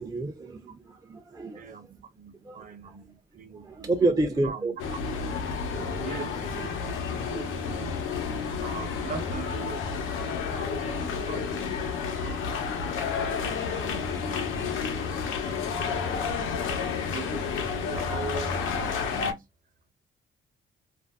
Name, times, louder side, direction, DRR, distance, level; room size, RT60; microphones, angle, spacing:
voice 1, 0.0-2.0 2.4-2.6 3.6-4.7 5.7-6.0 6.8-6.9 7.3-7.4 7.9-8.0, right 2 dB, 20° right, 0.5 m, -30 dB
voice 2, 1.5-1.9 2.2-4.8 6.0-7.9 8.6-11.9 12.2-12.4 13.0-14.7 15.4-19.4, right 6 dB, 45° right, 0.8 m, -42 dB
sound 1, 4.8-19.3, left 6 dB, 85° left, 0.8 m, -30 dB
2.5 x 2.0 x 3.4 m
cardioid pair, 90°, 20 cm